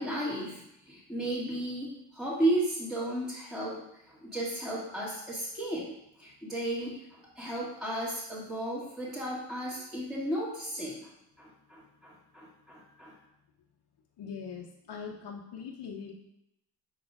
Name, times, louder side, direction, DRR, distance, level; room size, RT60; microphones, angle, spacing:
voice 1, 0.0-11.1 11.4-13.2, right 1 dB, ahead, -7 dB, 1.7 m, -34 dB
voice 2, 14.2-16.1, left 6 dB, 70° left, 0 dB, 0.8 m, -41 dB
5.8 x 4.2 x 4.7 m, 0.82 s
cardioid pair, 90°, 41 cm